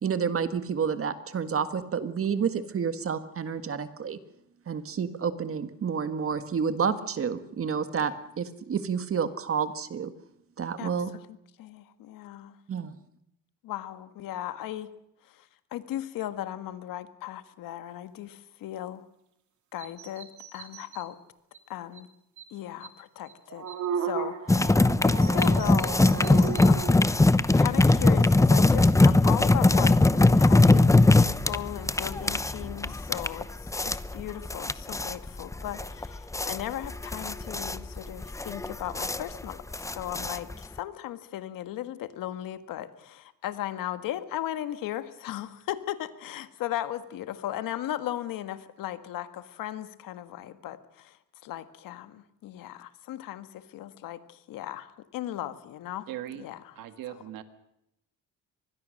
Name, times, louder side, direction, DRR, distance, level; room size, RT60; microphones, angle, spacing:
voice 1, 0.0-4.2 4.7-10.1 10.6-11.1 12.7-12.9, right 6 dB, 40° right, 11 dB, 1.7 m, -29 dB
voice 2, 11.6-12.6 13.6-14.9 15.3-15.4 15.7-19.0 19.7-21.2 21.7-22.1 22.5-23.6 24.0-33.5 33.8-51.2 51.4-56.1 56.4-56.8, left 12 dB, 80° left, 11 dB, 1.7 m, -37 dB
sound 1, 19.8-21.0 21.5-21.6 21.9-22.0 22.4-22.5 22.8-22.9 23.3-26.9, right 7 dB, 60° right, 3.4 m, -35 dB
sound 2, 24.5-40.8, left 2 dB, 10° left, 0.8 m, -21 dB
voice 3, 56.1-56.4 56.7-57.4, right 13 dB, 85° right, 9 dB, 1.8 m, -39 dB
24.5 x 20.5 x 6.5 m, 0.81 s
cardioid pair, 100°, 33 cm